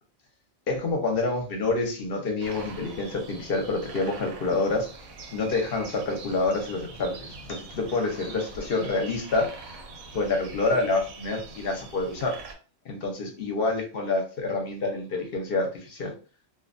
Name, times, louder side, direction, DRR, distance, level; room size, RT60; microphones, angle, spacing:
voice 1, 0.7-4.9 5.3-9.5 10.1-12.4 12.9-16.1, left 3 dB, 55° left, 2 dB, 0.7 m, -27 dB
sound 1, 2.4-12.5, right 3 dB, 90° right, 1.0 m, -43 dB
2.5 x 2.1 x 2.5 m, 0.36 s
omnidirectional pair, 1.4 m